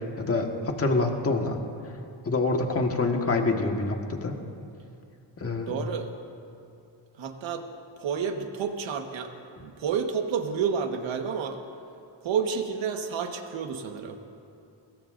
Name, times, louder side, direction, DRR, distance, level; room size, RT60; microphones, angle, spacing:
voice 1, 0.2-1.6 2.3-4.4 5.4-5.7, left 3 dB, 30° left, 2 dB, 1.6 m, -26 dB
voice 2, 5.6-6.1 7.2-7.6 8.0-9.3 9.6-11.6 12.2-14.2, right 6 dB, 75° right, 5 dB, 1.5 m, -30 dB
24.0 x 21.5 x 2.6 m, 2.5 s
wide cardioid pair, 140°, 45 cm